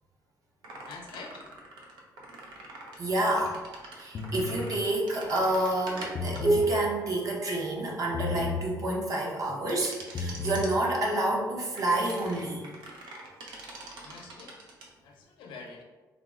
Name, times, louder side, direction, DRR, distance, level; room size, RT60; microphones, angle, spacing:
sound 1, 0.6-8.4 9.7-10.7 11.8-14.9, right 2 dB, 80° right, 0.6 m, -36 dB
voice 1, 0.8-1.4 14.0-14.5 15.0-15.8, left 4 dB, 80° left, 1 dB, 0.6 m, -45 dB
voice 2, 3.0-3.6 4.0-12.6, right 1 dB, 45° right, -2 dB, 0.8 m, -29 dB
sound 2, 4.1-4.6 6.0-6.7 8.1-8.7 10.0-10.7, left 4 dB, 35° left, 0.3 m, -33 dB
3.6 x 2.0 x 3.6 m, 1.3 s
cardioid pair, 130°, 8 cm